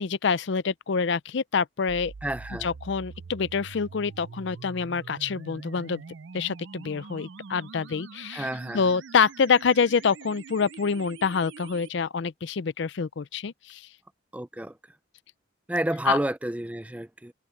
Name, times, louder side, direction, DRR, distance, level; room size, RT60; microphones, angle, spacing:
voice 1, 0.0-2.1 2.6-6.0 6.3-8.5 8.7-13.9 16.1-16.2, left 5 dB, 65° left, 0.5 m, -26 dB
sound 1, 1.9-11.9, right 5 dB, 70° right, 0.5 m, -44 dB
voice 2, 2.2-2.7 8.3-8.8 14.3-14.7 15.7-17.3, right 1 dB, 5° right, 0.4 m, -30 dB
head